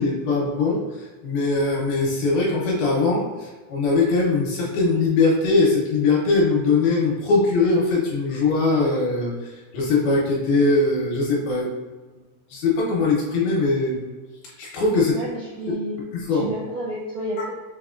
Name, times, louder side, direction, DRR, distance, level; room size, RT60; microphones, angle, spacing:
voice 1, 0.0-11.8 12.5-14.1 14.6-15.2 16.1-16.5, left 3 dB, 75° left, -4 dB, 2.5 m, -21 dB
voice 2, 15.1-15.9 16.3-17.5, right 1 dB, 85° right, -8 dB, 1.7 m, -30 dB
6.7 x 2.9 x 2.4 m, 1.2 s
omnidirectional pair, 4.9 m